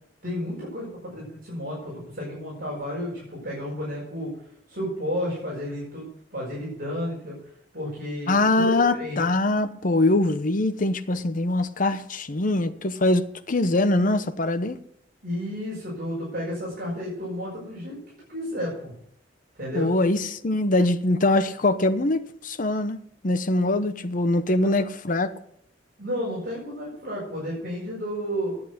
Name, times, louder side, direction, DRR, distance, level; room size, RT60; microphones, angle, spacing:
voice 1, 0.2-4.3 4.7-7.4 7.7-9.2 15.2-18.0 18.3-18.9 19.6-19.9 24.6-24.8 26.0-28.6, equal, 55° right, 5.8 m, -32 dB
voice 2, 8.3-14.8 19.7-25.3, left 2 dB, 45° left, 0.9 m, -23 dB
10.5 x 8.4 x 8.1 m
head